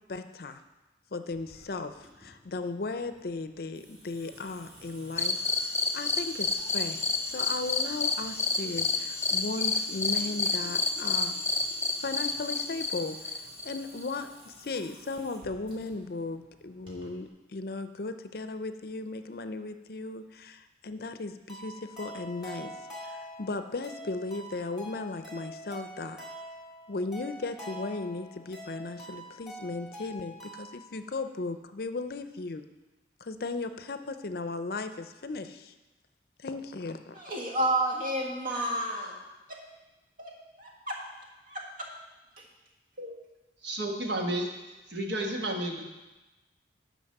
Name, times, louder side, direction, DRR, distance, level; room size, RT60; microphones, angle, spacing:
voice 1, 0.1-0.6 1.1-5.4 5.9-7.0 7.3-11.3 12.0-22.7 23.0-26.2 26.9-32.6 33.2-35.7 36.4-37.2, left 3 dB, 60° left, 9 dB, 0.5 m, -36 dB
Water tap faucet / Sink (filling or washing) / Drip, 1.3-17.3, equal, 30° right, 2.7 m, -53 dB
sound 1, 5.2-14.1, left 4 dB, 15° left, 0.6 m, -30 dB
sound 2, 21.5-30.9, equal, ahead, 2.5 m, -45 dB
voice 2, 37.1-39.2 39.5-39.6 40.2-41.0 41.5-41.9 42.4-42.5, right 1 dB, 50° right, -1 dB, 1.7 m, -31 dB
voice 3, 43.6-44.5 44.9-45.8, right 1 dB, 75° right, 2 dB, 1.3 m, -31 dB
9.4 x 5.3 x 6.5 m, 1.1 s
head